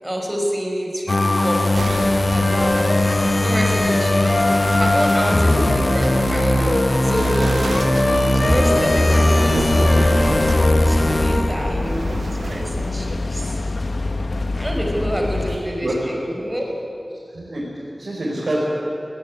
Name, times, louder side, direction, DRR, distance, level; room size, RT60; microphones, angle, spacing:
voice 1, 0.0-2.8 3.4-4.3 4.7-7.5 8.0-10.2 10.8-12.1 12.3-13.6 14.5-16.7, equal, 15° right, 0 dB, 5.4 m, -27 dB
sound 1, 1.1-11.9, left 1 dB, 50° left, 1.4 m, -18 dB
sound 2, 1.7-12.9, right 3 dB, 85° right, 1.0 m, -30 dB
sound 3, 8.6-15.6, left 2 dB, 75° left, 1.4 m, -26 dB
voice 2, 15.4-16.0 17.3-18.6, right 1 dB, 70° right, -6 dB, 5.0 m, -28 dB
19.5 x 18.0 x 9.8 m, 2.8 s
wide cardioid pair, 60°, 0 cm